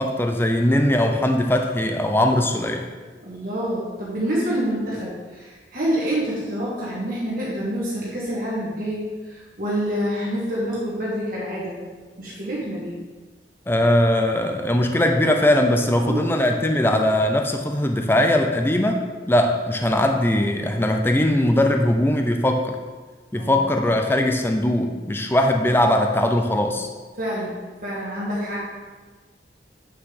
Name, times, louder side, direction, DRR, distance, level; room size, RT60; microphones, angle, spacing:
voice 1, 0.0-2.9 13.7-22.8 23.3-26.9, left 1 dB, 10° left, 4 dB, 0.5 m, -20 dB
voice 2, 3.2-11.8 12.2-12.9 15.9-16.2 23.4-23.7 27.2-28.6, equal, 50° right, -6 dB, 1.8 m, -27 dB
8.9 x 6.6 x 3.8 m, 1.4 s
head